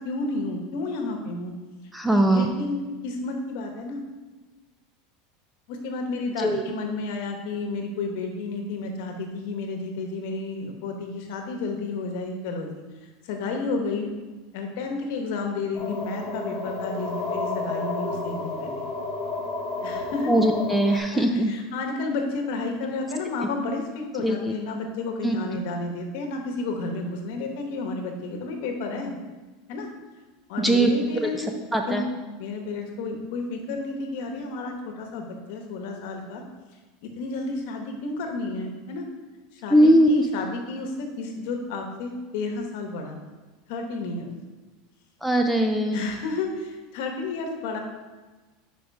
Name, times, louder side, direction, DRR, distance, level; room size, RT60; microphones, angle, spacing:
voice 1, 0.0-1.5 2.1-4.0 5.7-14.2 14.5-18.9 19.8-20.3 20.9-29.1 29.7-29.9 30.5-31.4 31.9-32.0 32.4-36.4 37.0-39.0 39.5-43.2 43.7-44.3 45.9-47.8, left 3 dB, 60° left, 3 dB, 1.0 m, -31 dB
voice 2, 1.9-2.5 6.4-6.6 20.3-21.5 24.2-24.5 25.2-25.4 30.6-30.9 31.7-32.1 39.7-40.1 45.2-46.0, right 1 dB, 5° right, 4 dB, 0.3 m, -20 dB
sound 1, 15.7-21.0, left 3 dB, 35° left, 1.4 m, -31 dB
5.2 x 4.9 x 4.6 m, 1.2 s
supercardioid pair, 165°, 0 cm